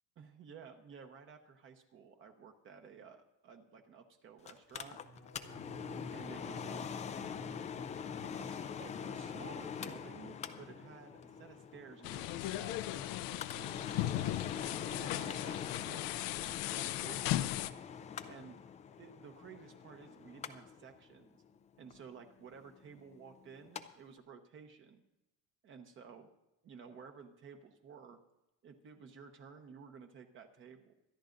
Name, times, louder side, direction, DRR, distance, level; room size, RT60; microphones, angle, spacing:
voice 1, 0.2-5.0 6.1-6.9 8.2-14.4 14.8-17.4 18.2-18.6 19.0-21.4 21.8-25.0 25.6-26.3 26.6-28.2 28.6-30.9, right 6 dB, 35° right, 5 dB, 1.0 m, -54 dB
Mechanical fan, 4.5-23.8 24.2-24.3, left 7 dB, 20° left, 0.4 m, -45 dB
sound 1, 4.8-10.8 11.1-11.6 11.9-12.2, right 1 dB, 35° left, 1.0 m, -55 dB
sound 2, 12.0-17.7, left 14 dB, 70° left, 0.6 m, -37 dB
24.5 x 10.5 x 2.6 m, 0.92 s
cardioid pair, 170°, 35 cm